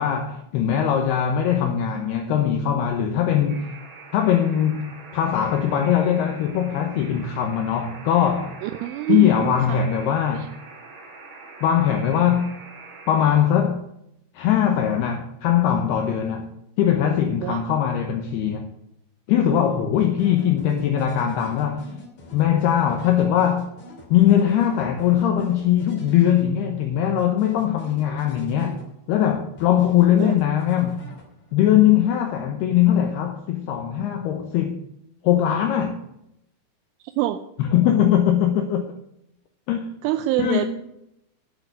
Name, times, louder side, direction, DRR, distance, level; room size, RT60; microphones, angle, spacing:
voice 1, 0.0-3.7 4.1-8.6 9.1-10.5 11.6-12.6 13.1-13.8 14.3-16.5 16.8-18.7 19.3-21.9 22.3-23.7 24.1-28.8 29.1-31.0 31.5-34.8 35.2-36.0 37.6-38.9 39.7-39.9 40.4-40.7, left 10 dB, 80° left, 2.4 m, -21 dB
Alarm, 3.5-13.3, right 4 dB, 50° right, 3.5 m, -44 dB
voice 2, 8.6-9.8 10.3-10.5 17.4-17.7 30.2-30.4 37.0-37.4 40.0-40.7, right 14 dB, 85° right, 3.0 m, -26 dB
sound 1, 20.0-26.8 27.2-29.2 29.6-31.6, left 2 dB, 40° left, 3.5 m, -45 dB
9.6 x 7.8 x 7.9 m
omnidirectional pair, 5.7 m